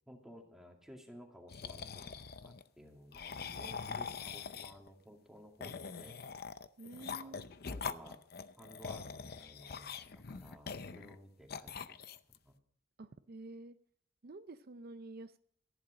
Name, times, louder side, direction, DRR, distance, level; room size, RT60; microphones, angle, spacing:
voice 1, 0.1-6.2 7.0-7.3 7.7-8.2 8.6-12.0 12.3-12.6, equal, ahead, 1 dB, 2.3 m, -56 dB
sound 1, 1.5-2.6 3.1-4.9 5.6-11.2 11.5-12.4, left 5 dB, 55° left, 0.7 m, -43 dB
voice 2, 6.8-7.4 13.0-13.8 14.2-15.4, right 2 dB, 50° right, 11 dB, 0.5 m, -49 dB
14.0 x 11.5 x 5.0 m, 0.67 s
head